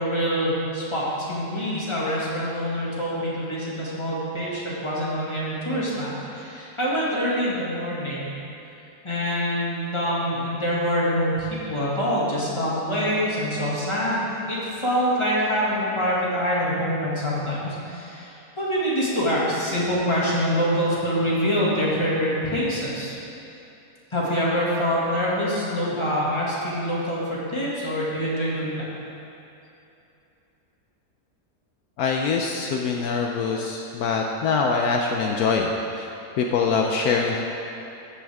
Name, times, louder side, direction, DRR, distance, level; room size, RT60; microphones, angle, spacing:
voice 1, 0.0-8.3 9.0-23.1 24.1-28.9, equal, 15° left, -7 dB, 2.2 m, -25 dB
voice 2, 32.0-36.1 36.4-37.4, left 4 dB, 75° left, 1 dB, 1.2 m, -24 dB
13.5 x 9.1 x 3.6 m, 2.8 s
omnidirectional pair, 1.7 m